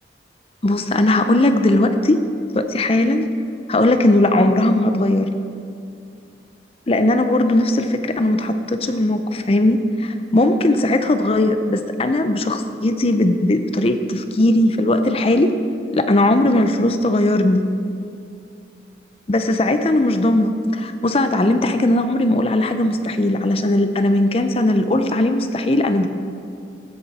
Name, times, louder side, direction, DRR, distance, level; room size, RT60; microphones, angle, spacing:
voice 1, 0.6-2.2 2.5-3.3 3.7-5.3 6.9-15.5 15.9-17.6 19.3-26.1, left 1 dB, 35° left, 8 dB, 0.5 m, -18 dB
14.0 x 8.1 x 4.1 m, 2.5 s
head